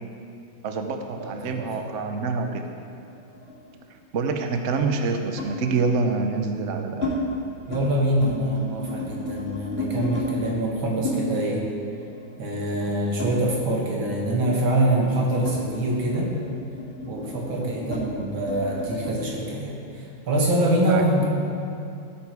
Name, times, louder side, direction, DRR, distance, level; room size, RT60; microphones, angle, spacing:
voice 1, 0.6-2.7 4.1-7.1 20.9-21.1, right 4 dB, 55° right, 5 dB, 0.9 m, -26 dB
voice 2, 1.1-1.7 7.7-11.7 12.4-16.3 17.1-21.2, right 1 dB, 80° right, -2 dB, 2.8 m, -25 dB
sound 1, 2.7-4.1 5.4-5.6 6.4-7.2 7.5-7.9 8.1-10.3 11.0-13.9 14.2-19.2, left 2 dB, 30° left, 2.9 m, -34 dB
16.5 x 8.9 x 4.8 m, 2.6 s
omnidirectional pair, 2.2 m